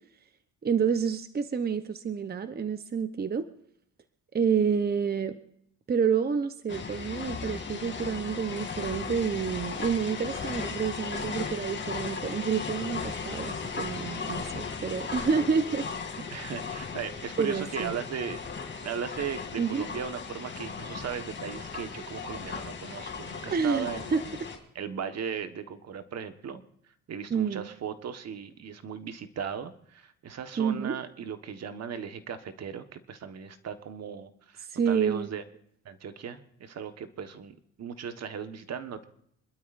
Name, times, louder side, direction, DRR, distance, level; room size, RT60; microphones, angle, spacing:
voice 1, 0.6-3.5 4.3-5.4 5.9-15.8 16.2-16.4 17.4-18.0 19.6-19.9 23.5-24.2 27.3-27.7 30.6-31.0 34.6-35.3, right 6 dB, 30° right, 10 dB, 0.8 m, -29 dB
sound 1, 6.7-24.6, left 5 dB, 40° left, 2.6 m, -37 dB
voice 2, 16.3-18.4 18.8-24.1 24.7-26.6 27.1-35.4 35.8-39.0, right 7 dB, 60° right, 9 dB, 1.4 m, -37 dB
27.5 x 12.5 x 2.6 m, 0.69 s
cardioid pair, 90°, 30 cm